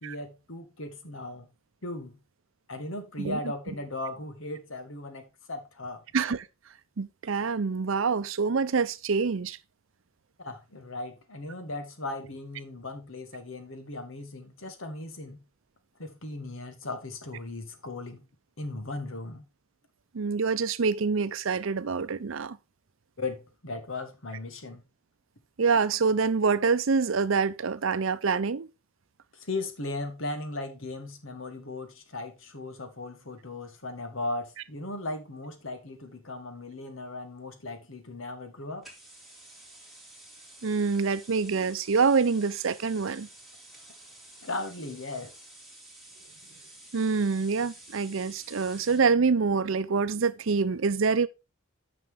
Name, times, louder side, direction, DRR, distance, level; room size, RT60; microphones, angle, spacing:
voice 1, 0.0-1.5 1.8-2.2 2.7-6.0 10.4-15.4 16.0-18.3 18.6-19.4 23.2-24.8 29.3-38.9 44.4-45.3, left 2 dB, 70° left, 1.7 m, -37 dB
voice 2, 6.1-6.5 7.0-9.6 20.1-22.6 25.6-28.7 40.6-43.3 46.9-51.3, right 5 dB, 70° right, 0.6 m, -26 dB
sound 1, 38.8-49.1, right 1 dB, ahead, 3.0 m, -51 dB
9.6 x 5.9 x 3.7 m
head